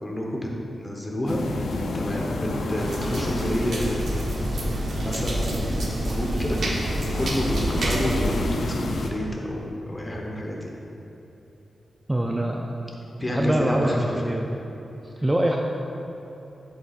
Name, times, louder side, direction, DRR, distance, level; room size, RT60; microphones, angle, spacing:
voice 1, 0.0-0.5 0.8-4.2 5.0-6.6 7.1-10.7 13.2-14.3, equal, 20° left, -1 dB, 1.0 m, -29 dB
sound 1, 1.3-9.1, left 2 dB, 90° left, 0.5 m, -31 dB
sound 2, 2.8-8.4, right 1 dB, 70° right, 1.0 m, -28 dB
voice 2, 12.1-12.8 13.2-14.5 15.0-15.6, right 1 dB, 15° right, 0 dB, 0.4 m, -24 dB
7.9 x 7.8 x 2.5 m, 3.0 s
wide cardioid pair, 120°, 0 cm